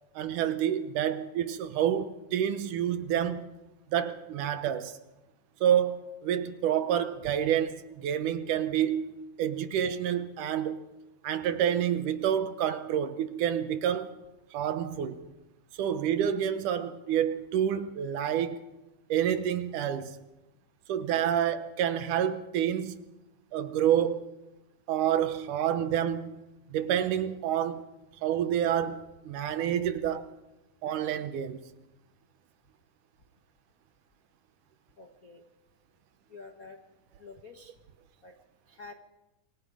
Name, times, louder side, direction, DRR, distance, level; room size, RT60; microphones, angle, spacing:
voice 1, 0.2-3.5 3.9-5.0 5.6-10.8 11.2-14.1 14.5-15.2 15.7-18.7 19.1-20.2 20.9-23.0 23.5-24.3 24.9-26.4 26.7-27.9 28.2-30.3 30.8-31.6, right 9 dB, 70° right, 2.3 m, -28 dB
voice 2, 35.0-35.4 36.3-36.8 37.2-37.7 38.2-38.3 38.7-38.9, left 4 dB, 60° left, 0.9 m, -48 dB
27.0 x 23.5 x 4.9 m
omnidirectional pair, 4.0 m